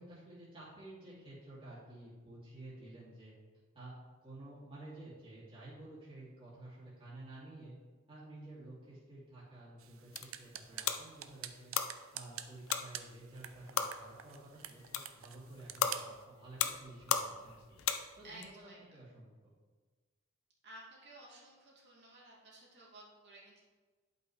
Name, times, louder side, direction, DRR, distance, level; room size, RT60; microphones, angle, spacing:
voice 1, 0.0-3.3 3.7-3.9 4.2-7.7 8.1-11.7 12.1-17.8 18.2-19.3, right 2 dB, 25° right, -9 dB, 2.7 m, -52 dB
sound 1, 9.8-18.5, left 7 dB, 85° left, 0.6 m, -38 dB
sound 2, 9.8-16.2, right 10 dB, 75° right, 0.5 m, -49 dB
voice 2, 18.2-18.8 20.6-23.6, right 1 dB, 60° right, -5 dB, 2.6 m, -54 dB
11.5 x 5.5 x 3.3 m, 1.4 s
head